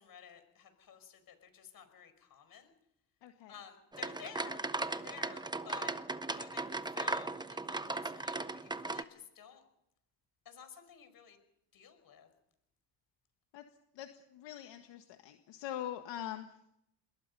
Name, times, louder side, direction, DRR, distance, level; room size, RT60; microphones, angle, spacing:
voice 1, 0.0-2.7 3.5-5.9 6.3-9.6 10.5-11.4 11.7-12.3, left 7 dB, 50° left, 9 dB, 5.5 m, -53 dB
voice 2, 3.2-3.5 13.5-13.6 13.9-16.5, left 11 dB, 75° left, 6 dB, 1.7 m, -43 dB
sound 1, 3.9-9.0, right 2 dB, 10° right, 1.0 m, -37 dB
27.0 x 21.5 x 5.5 m, 0.80 s
cardioid pair, 95°, 43 cm